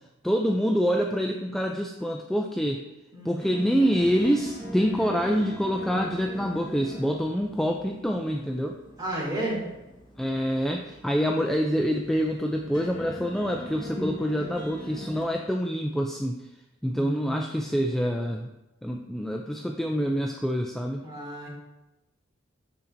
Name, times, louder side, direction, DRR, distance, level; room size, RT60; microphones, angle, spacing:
voice 1, 0.2-2.8 3.2-8.7 10.2-16.4 16.8-18.5 18.8-21.0, equal, ahead, 1 dB, 0.3 m, -26 dB
sound 1, 3.4-15.2, equal, 25° left, 1.2 m, -39 dB
voice 2, 9.0-9.6 16.9-17.5 21.0-21.5, right 1 dB, 20° right, -5 dB, 2.3 m, -32 dB
12.5 x 4.3 x 2.6 m, 0.97 s
head